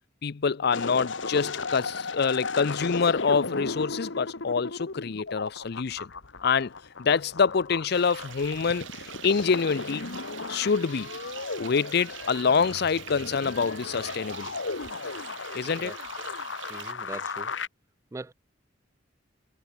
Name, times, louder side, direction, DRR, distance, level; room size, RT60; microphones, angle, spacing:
voice 1, 0.2-6.1 6.4-6.7 7.0-8.9 9.2-10.1 10.5-11.1 11.6-14.5 15.5-16.0, left 5 dB, 55° left, 0.5 m, -26 dB
sound 1, 0.7-17.7, left 4 dB, 75° left, 1.6 m, -36 dB
sound 2, 7.9-16.9, right 10 dB, 75° right, 0.7 m, -44 dB
voice 2, 15.6-16.0 16.7-17.5 18.1-18.3, right 2 dB, 15° right, 0.3 m, -41 dB
head